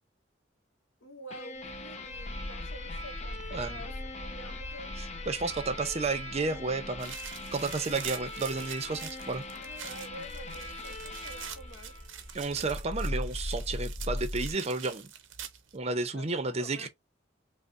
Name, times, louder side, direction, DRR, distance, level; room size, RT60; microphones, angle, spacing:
voice 1, 1.0-3.9 4.2-5.0 9.6-11.9 16.1-16.3 16.6-16.9, equal, 70° left, 0.8 m, -48 dB
sound 1, 1.3-12.6, left 2 dB, 35° left, 0.6 m, -43 dB
sound 2, 1.6-14.5, left 1 dB, 10° left, 0.9 m, -41 dB
voice 2, 3.5-3.8 5.3-7.1 7.5-9.4 12.3-15.1 15.7-16.9, right 3 dB, 35° right, 0.5 m, -32 dB
sound 3, 7.0-15.8, right 9 dB, 75° right, 0.6 m, -45 dB
5.2 x 2.0 x 2.5 m
head